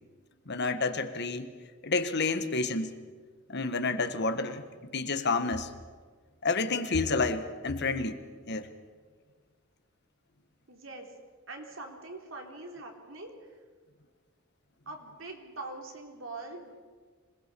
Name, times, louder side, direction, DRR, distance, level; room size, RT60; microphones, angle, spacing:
voice 1, 0.5-1.5 1.8-2.9 3.5-4.6 4.9-5.7 6.4-8.2 8.5-8.7, left 3 dB, 55° left, 9 dB, 1.5 m, -29 dB
voice 2, 10.7-11.1 11.5-13.5 14.9-16.7, right 2 dB, 70° right, 2 dB, 3.8 m, -43 dB
26.0 x 20.0 x 7.0 m, 1.5 s
head